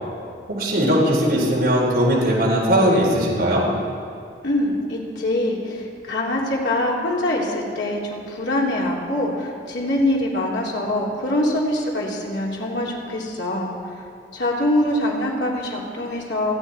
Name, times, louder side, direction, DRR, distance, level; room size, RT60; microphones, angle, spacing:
voice 1, 0.5-3.7, equal, 60° right, -5 dB, 4.3 m, -19 dB
voice 2, 4.4-13.7 13.9-14.0 14.3-16.6, left 1 dB, 85° left, -3 dB, 3.2 m, -24 dB
29.0 x 10.0 x 4.4 m, 2.4 s
head